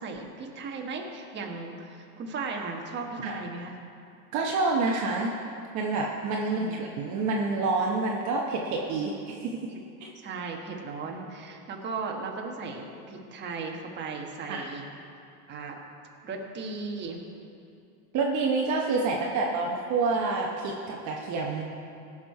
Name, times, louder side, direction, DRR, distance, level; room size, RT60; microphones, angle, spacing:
voice 1, 0.0-3.8 6.4-6.9 10.1-14.9 15.5-15.8 16.2-17.2 19.1-19.4, right 4 dB, 25° right, 1 dB, 1.3 m, -37 dB
voice 2, 4.3-5.3 5.7-9.6 10.0-10.1 14.5-14.7 18.1-21.6, right 3 dB, 40° right, -1 dB, 1.1 m, -28 dB
17.5 x 6.1 x 4.7 m, 2.6 s
supercardioid pair, 140°, 44 cm